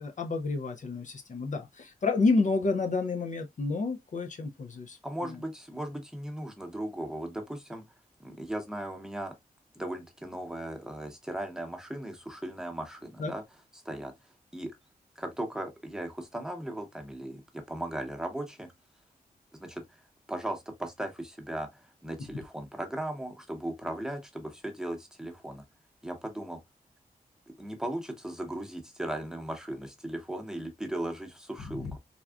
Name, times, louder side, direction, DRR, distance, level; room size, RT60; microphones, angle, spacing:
voice 1, 0.0-5.4 13.2-13.3 31.7-31.9, left 3 dB, 55° left, 0.5 m, -30 dB
voice 2, 5.0-7.8 8.2-9.3 9.7-13.4 13.7-14.1 14.5-14.7 15.2-18.7 19.5-20.0 20.3-25.6 26.0-26.6 27.5-32.0, right 1 dB, 5° right, 0.9 m, -37 dB
3.5 x 2.3 x 2.2 m
wide cardioid pair, 85°, 16 cm